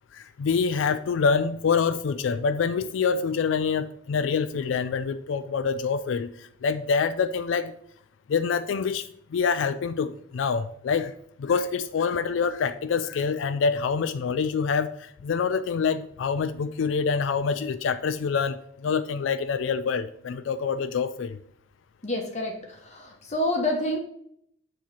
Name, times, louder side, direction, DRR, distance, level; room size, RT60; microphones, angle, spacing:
voice 1, 0.1-7.7 8.3-11.1 11.4-21.4, left 5 dB, 85° left, 11 dB, 0.3 m, -26 dB
voice 2, 22.0-24.0, left 1 dB, 35° left, 1 dB, 1.0 m, -28 dB
7.2 x 3.0 x 5.5 m, 0.68 s
head